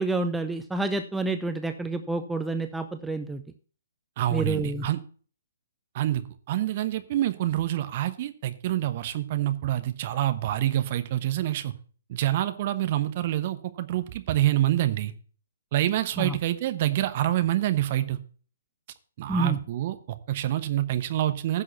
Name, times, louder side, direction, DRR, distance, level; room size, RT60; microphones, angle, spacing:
voice 1, 0.0-3.4 4.3-4.9 16.2-16.4 19.3-19.6, right 2 dB, 5° right, 8 dB, 0.6 m, -28 dB
voice 2, 4.2-5.0 5.9-11.7 12.1-15.1 15.7-18.2 19.2-21.6, right 13 dB, 40° right, 10 dB, 1.0 m, -27 dB
10.5 x 6.4 x 5.9 m, 0.41 s
figure-of-eight pair, 125°, 0 cm